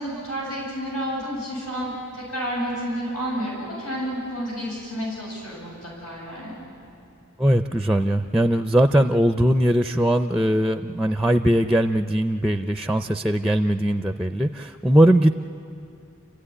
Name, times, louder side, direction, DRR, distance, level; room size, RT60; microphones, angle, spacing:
voice 1, 0.0-6.6, equal, 90° left, -4 dB, 7.9 m, -30 dB
voice 2, 7.4-15.3, right 1 dB, ahead, 8 dB, 0.5 m, -20 dB
29.5 x 15.5 x 9.8 m, 2.6 s
head